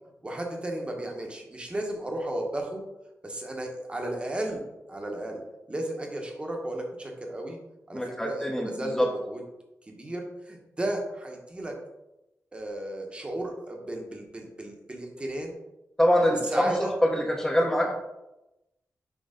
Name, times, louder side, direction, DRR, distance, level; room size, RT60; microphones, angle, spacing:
voice 1, 0.2-2.8 3.2-5.4 5.7-7.6 7.9-9.4 9.9-11.7 12.5-15.5 16.4-16.9, right 1 dB, 20° right, 1 dB, 1.0 m, -34 dB
voice 2, 7.9-9.1 16.0-17.9, equal, 10° left, 1 dB, 0.8 m, -24 dB
6.3 x 3.2 x 5.0 m, 0.94 s
wide cardioid pair, 155°, 5 cm